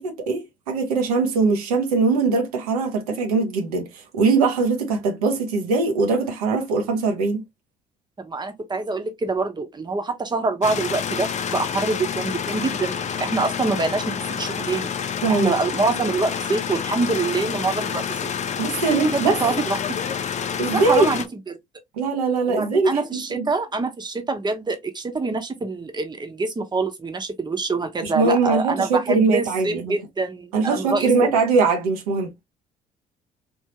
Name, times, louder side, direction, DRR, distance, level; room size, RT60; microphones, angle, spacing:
voice 1, 0.0-7.4 15.2-15.6 18.6-19.4 20.6-21.1 22.0-23.5 28.0-30.0 30.5-32.3, right 4 dB, 80° right, 0.9 m, -21 dB
voice 2, 8.2-14.9 15.3-18.3 18.9-19.8 20.7-21.5 22.5-31.3, right 3 dB, 20° right, 1.0 m, -25 dB
sound 1, 10.6-21.3, left 7 dB, 40° left, 0.5 m, -28 dB
3.5 x 2.7 x 2.8 m
hypercardioid pair, 50°, 19 cm